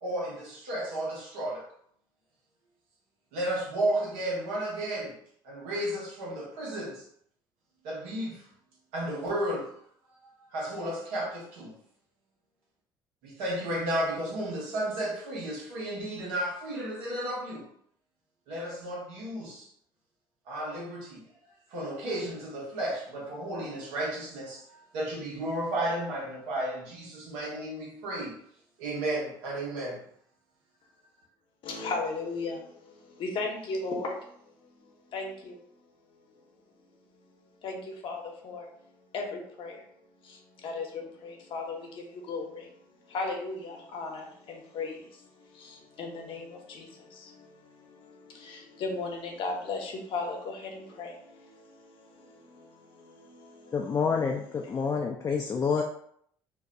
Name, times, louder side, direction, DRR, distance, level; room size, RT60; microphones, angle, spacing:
voice 1, 0.0-1.6 3.3-5.1 5.4-7.1 7.8-8.5 8.9-9.7 10.2-11.8 13.2-17.6 18.5-19.7 20.5-21.2 21.7-28.4 28.8-30.0, right 1 dB, 85° right, -4 dB, 1.1 m, -33 dB
voice 2, 31.6-34.2 35.1-35.6 37.6-38.7 39.1-39.8 40.2-54.0 54.6-54.9, left 3 dB, 60° left, 1 dB, 0.8 m, -37 dB
voice 3, 53.7-55.8, left 5 dB, 35° left, 0 dB, 0.4 m, -28 dB
2.6 x 2.2 x 3.7 m, 0.66 s
supercardioid pair, 80°, 10 cm